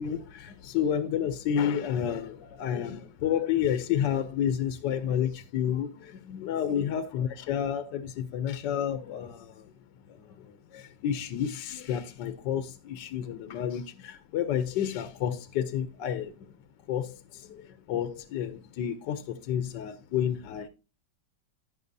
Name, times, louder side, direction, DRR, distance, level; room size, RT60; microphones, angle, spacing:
voice 1, 0.0-9.7 10.1-16.5 16.9-20.7, left 9 dB, 70° left, 1.3 m, -30 dB
15.5 x 5.8 x 2.7 m
omnidirectional pair, 2.2 m